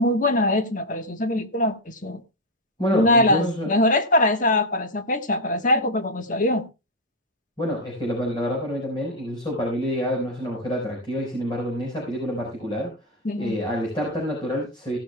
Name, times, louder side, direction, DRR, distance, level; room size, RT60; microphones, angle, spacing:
voice 1, 0.0-2.2 2.9-6.6 13.2-13.6, left 1 dB, 40° left, 1.3 m, -22 dB
voice 2, 2.8-3.7 7.6-12.9 13.4-15.0, equal, 25° left, 4.6 m, -27 dB
16.5 x 11.5 x 2.3 m
head